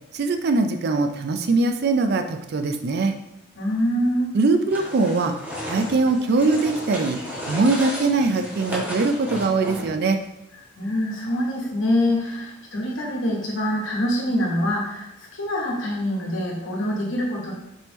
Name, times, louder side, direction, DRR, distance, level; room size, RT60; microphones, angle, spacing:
voice 1, 0.1-3.1 4.3-5.4 5.7-7.2 7.5-10.2, right 3 dB, 50° right, 7 dB, 0.4 m, -21 dB
voice 2, 3.6-4.3 10.8-17.5, left 1 dB, 60° left, -3 dB, 1.1 m, -25 dB
sound 1, 4.7-10.1, equal, 10° right, 0.8 m, -34 dB
4.4 x 3.4 x 3.0 m, 0.87 s
head